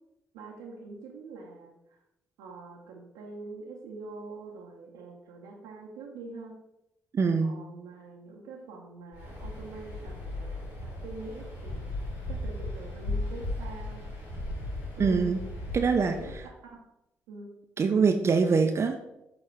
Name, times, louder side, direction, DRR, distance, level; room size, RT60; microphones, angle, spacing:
voice 1, 0.3-2.0 2.4-6.6 7.4-11.9 12.3-14.1 15.0-15.4 16.0-16.4 16.6-16.8 17.3-17.5, right 3 dB, 80° right, -3 dB, 0.8 m, -44 dB
voice 2, 7.1-7.5 15.0-15.4 15.7-16.1 17.8-19.0, right 5 dB, 45° right, 6 dB, 0.6 m, -24 dB
Waves surf, 9.1-16.4, left 1 dB, 75° left, 2.1 m, -36 dB
7.1 x 3.1 x 4.6 m, 0.88 s
hypercardioid pair, 45°, 6 cm